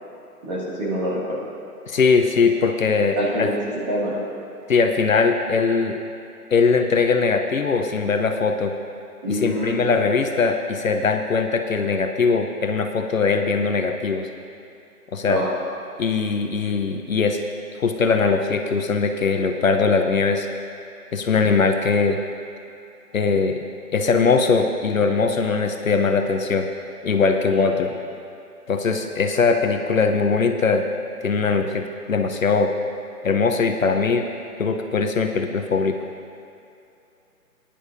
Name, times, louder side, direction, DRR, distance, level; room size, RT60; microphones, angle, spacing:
voice 1, 0.4-1.5 3.2-3.6 3.9-4.2 9.2-9.8 15.3-15.5 27.8-27.9, equal, 25° right, -6 dB, 2.2 m, -25 dB
voice 2, 1.9-3.5 4.7-6.0 6.5-8.7 9.3-14.3 15.1-15.4 16.0-17.4 17.7-20.5 21.1-22.2 23.1-23.6 23.9-26.7 27.0-27.9 28.7-30.9 31.2-32.7 33.2-34.3 34.6-36.0, left 4 dB, 55° left, 5 dB, 0.8 m, -21 dB
18.5 x 10.0 x 2.7 m, 2.8 s
hypercardioid pair, 165°, 47 cm